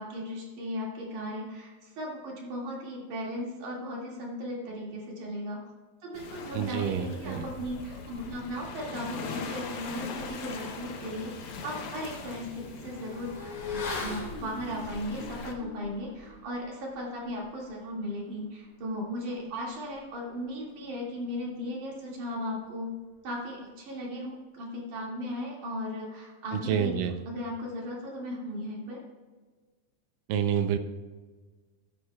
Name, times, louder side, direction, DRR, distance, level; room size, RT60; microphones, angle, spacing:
voice 1, 0.0-5.6 6.0-11.3 11.6-22.9 23.2-27.0 27.3-29.0, equal, 60° right, -3 dB, 3.5 m, -36 dB
Waves surf, 6.1-15.5, left 4 dB, 90° left, 1.2 m, -41 dB
voice 2, 6.5-7.4 26.5-27.1 30.3-30.8, right 8 dB, 80° right, 9 dB, 2.2 m, -28 dB
Motorcycle / Accelerating revving vroom, 11.7-21.2 21.4-21.6, left 4 dB, 55° left, 3.5 m, -43 dB
13.5 x 11.5 x 2.3 m, 1.4 s
omnidirectional pair, 4.1 m